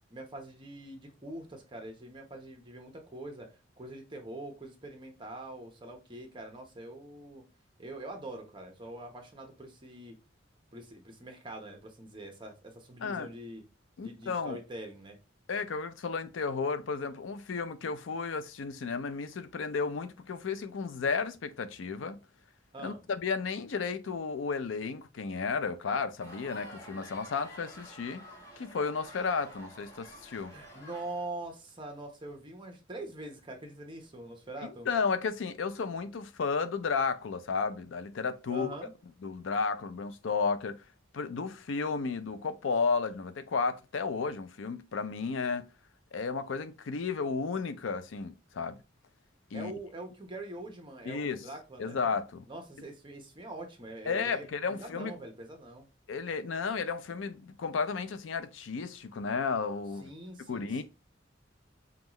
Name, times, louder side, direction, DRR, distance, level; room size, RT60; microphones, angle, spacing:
voice 1, 0.1-3.5 3.8-7.4 7.8-10.2 10.7-13.6 14.0-15.2 22.7-23.0 30.5-34.9 38.5-38.9 49.5-52.0 52.5-55.9 60.0-60.8, right 2 dB, 25° right, 0.9 m, -44 dB
voice 2, 14.0-14.6 15.5-22.2 22.8-28.2 28.6-30.6 34.6-38.7 39.2-40.8 41.1-45.7 46.1-48.8 49.5-49.7 51.1-51.5 51.8-52.4 54.1-55.1 56.1-60.1 60.5-60.8, left 5 dB, 75° left, 0.5 m, -33 dB
sound 1, 26.2-31.2, equal, 20° left, 1.3 m, -50 dB
5.4 x 2.3 x 3.0 m
head